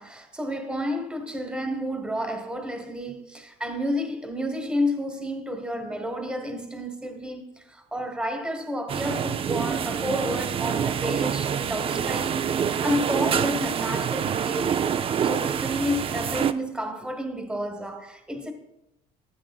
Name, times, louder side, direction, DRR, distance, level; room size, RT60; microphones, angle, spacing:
voice 1, 0.0-7.4 7.7-14.9 15.2-18.5, left 1 dB, 5° right, 1.2 m, -31 dB
sound 1, 8.9-16.5, right 8 dB, 35° right, 0.4 m, -26 dB
13.5 x 7.7 x 2.3 m
supercardioid pair, 90°, 17 cm